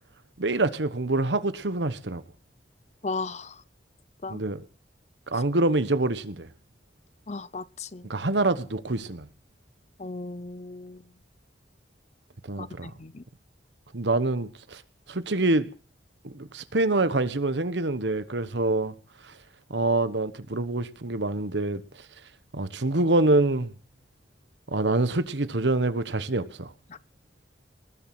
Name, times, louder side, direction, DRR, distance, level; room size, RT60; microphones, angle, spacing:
voice 1, 0.4-2.2 4.3-4.6 5.3-6.5 8.1-9.3 12.4-12.9 13.9-14.8 15.1-15.7 16.2-18.9 19.3-19.4 19.7-21.8 22.5-23.7 24.7-26.7, right 2 dB, 80° right, 1.2 m, -26 dB
voice 2, 3.0-3.6 4.2-4.4 7.3-8.1 10.0-11.0 12.6-13.2 26.9-27.0, left 3 dB, 40° left, 0.6 m, -36 dB
20.0 x 7.4 x 7.7 m
head